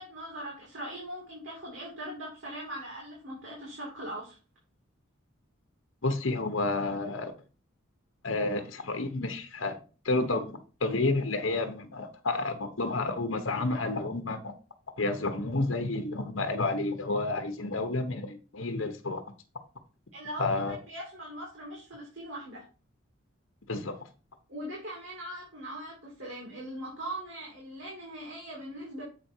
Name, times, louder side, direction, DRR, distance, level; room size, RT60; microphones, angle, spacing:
voice 1, 0.0-4.4 20.1-22.6 24.5-29.0, right 1 dB, 65° right, 3.2 m, -40 dB
voice 2, 6.0-7.3 8.2-9.8 10.0-14.5 15.0-19.2 20.4-20.8 23.7-24.0, left 2 dB, 70° left, 1.0 m, -30 dB
7.6 x 5.2 x 4.5 m
head